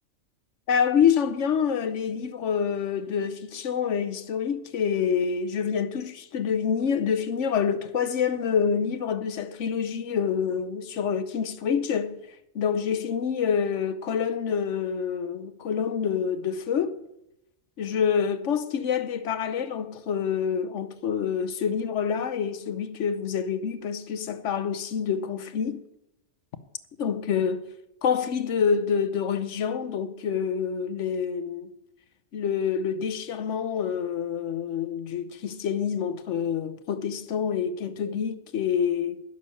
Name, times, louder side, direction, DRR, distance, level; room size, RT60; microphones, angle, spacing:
voice 1, 0.7-12.2 12.5-17.0 17.8-25.8 27.0-27.6 28.0-31.7 32.3-39.2, left 7 dB, 70° left, 1.1 m, -27 dB
11.0 x 6.6 x 8.3 m
omnidirectional pair, 1.3 m